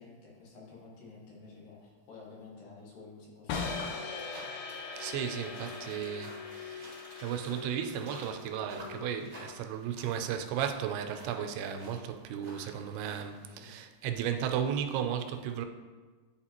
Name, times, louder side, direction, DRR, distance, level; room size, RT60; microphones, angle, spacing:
voice 1, 0.0-3.9 13.5-13.8, left 4 dB, 70° left, 2.8 m, -51 dB
sound 1, 3.5-9.5, left 5 dB, 85° left, 2.6 m, -40 dB
sound 2, 3.6-13.6, equal, 40° right, 0.8 m, -52 dB
Crumpling crinkling, 4.7-9.2, equal, 45° left, 0.8 m, -57 dB
voice 2, 5.0-6.9 7.2-15.7, right 8 dB, 85° right, 2.5 m, -35 dB
10.0 x 4.7 x 2.9 m
omnidirectional pair, 4.6 m